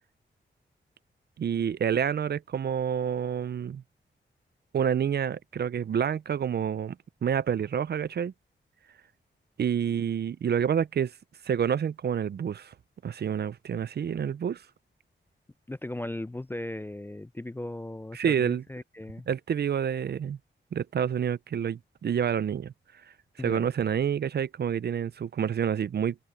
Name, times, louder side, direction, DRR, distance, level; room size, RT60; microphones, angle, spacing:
voice 1, 1.4-3.8 4.7-7.0 7.2-8.3 9.6-11.1 11.5-12.7 13.0-14.6 18.1-18.6 19.3-20.4 20.7-22.7 23.4-26.2, right 8 dB, 55° right, 0.4 m, -28 dB
voice 2, 15.7-19.3 23.4-23.7, left 1 dB, 10° left, 0.3 m, -37 dB
open air
wide cardioid pair, 125°, 20 cm